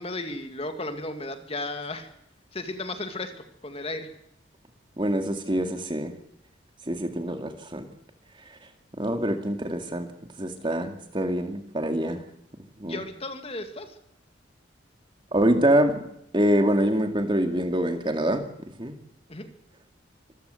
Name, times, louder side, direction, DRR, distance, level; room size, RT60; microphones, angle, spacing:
voice 1, 0.0-2.1 2.5-3.3 3.6-4.1 12.8-13.9 19.3-19.5, left 2 dB, 30° left, 7 dB, 2.2 m, -34 dB
voice 2, 5.0-6.1 6.9-7.8 9.0-10.1 10.4-12.2 12.8-13.0 15.3-16.0 16.3-18.4 18.8-19.0, right 1 dB, 25° right, 6 dB, 2.2 m, -25 dB
25.5 x 15.0 x 7.9 m, 0.77 s
head